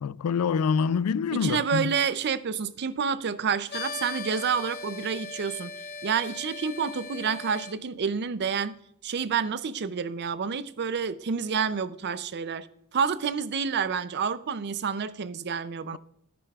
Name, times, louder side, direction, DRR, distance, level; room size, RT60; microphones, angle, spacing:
voice 1, 0.0-1.9, left 6 dB, 85° left, 0.3 m, -26 dB
voice 2, 1.3-5.7 6.0-8.7 9.0-12.7 12.9-16.0, right 6 dB, 50° right, 0.5 m, -29 dB
sound 1, 3.7-7.7, left 4 dB, 45° left, 0.6 m, -39 dB
13.0 x 10.0 x 2.4 m
head